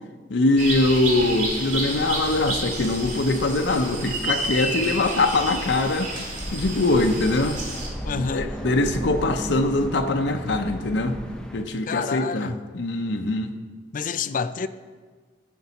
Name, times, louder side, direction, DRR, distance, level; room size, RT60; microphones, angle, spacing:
voice 1, 0.3-6.1 6.5-7.6 8.1-11.2 11.5-13.5, left 2 dB, 90° left, 0.6 m, -23 dB
sound 1, 0.6-7.9, right 2 dB, 50° right, 2.0 m, -30 dB
sound 2, 6.4-11.6, equal, 5° left, 0.7 m, -34 dB
voice 2, 8.0-8.6 11.9-12.6 13.9-14.7, left 5 dB, 50° left, 0.4 m, -28 dB
14.0 x 5.9 x 4.1 m
head